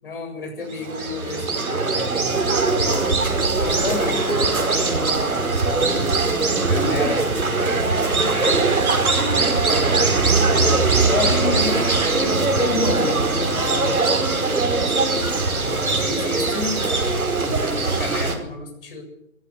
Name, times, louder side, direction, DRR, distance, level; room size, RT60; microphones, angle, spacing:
voice 1, 0.0-2.4 3.6-6.1 6.6-7.9 8.1-8.8 10.9-12.0 14.9-15.2 15.5-19.0, left 3 dB, 40° left, 4 dB, 7.5 m, -31 dB
sound 1, 0.7-18.4, right 3 dB, 75° right, 5.1 m, -21 dB
voice 2, 4.0-4.6 11.3-11.8 12.6-14.1, left 5 dB, 15° left, 2 dB, 2.6 m, -29 dB
22.0 x 15.5 x 8.2 m, 0.76 s
hypercardioid pair, 165°, 43 cm